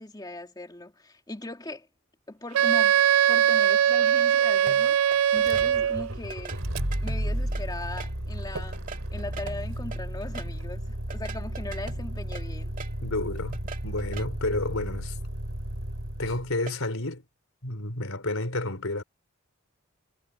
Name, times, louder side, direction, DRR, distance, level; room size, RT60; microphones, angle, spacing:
voice 1, 0.0-1.9 2.3-6.6 7.0-8.8 9.1-12.8, left 2 dB, 20° left, 2.4 m, -39 dB
Wind instrument woodwind instrument, 2.5-6.1, right 9 dB, 90° right, 0.3 m, -21 dB
sound 1, 4.7-5.7 6.3-8.2 8.6-10.5 11.1-13.0 13.4-14.3 16.7-16.8, right 4 dB, 40° right, 2.4 m, -42 dB
Motor vehicle (road), 5.4-16.6, right 1 dB, 70° right, 3.3 m, -33 dB
voice 2, 13.0-15.2 16.2-17.2 17.6-19.0, left 2 dB, 80° left, 4.4 m, -30 dB
head